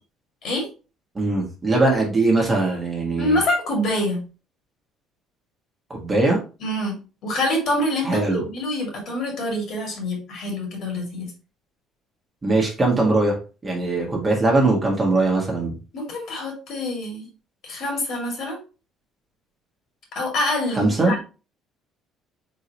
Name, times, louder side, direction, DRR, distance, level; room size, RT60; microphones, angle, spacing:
voice 1, 1.1-3.4 5.9-6.4 8.0-8.4 12.4-13.4 13.6-15.7 20.8-21.1, right 2 dB, 20° right, -1 dB, 1.4 m, -20 dB
voice 2, 3.2-4.2 6.6-11.3 15.9-17.3 17.6-18.6 20.1-21.2, left 1 dB, 55° left, 0 dB, 2.2 m, -26 dB
4.1 x 3.7 x 2.9 m, 0.33 s
cardioid pair, 130°, 0 cm